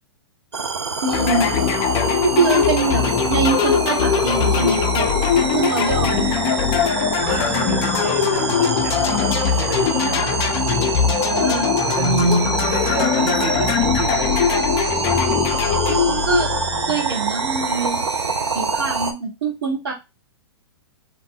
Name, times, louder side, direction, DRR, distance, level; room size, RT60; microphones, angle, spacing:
sound 1, 0.5-19.1, right 4 dB, 85° right, 0.5 m, -25 dB
voice 1, 1.0-1.5 2.2-5.1 5.5-6.4 11.2-11.8 15.9-16.5 16.9-18.1 18.5-19.9, right 4 dB, 65° right, 1.2 m, -24 dB
sound 2, 1.1-17.0, left 7 dB, 30° left, 0.4 m, -21 dB
voice 2, 7.1-10.6 11.9-14.4, right 3 dB, 45° right, 0.8 m, -27 dB
2.4 x 2.0 x 3.6 m
figure-of-eight pair, 115°, 14 cm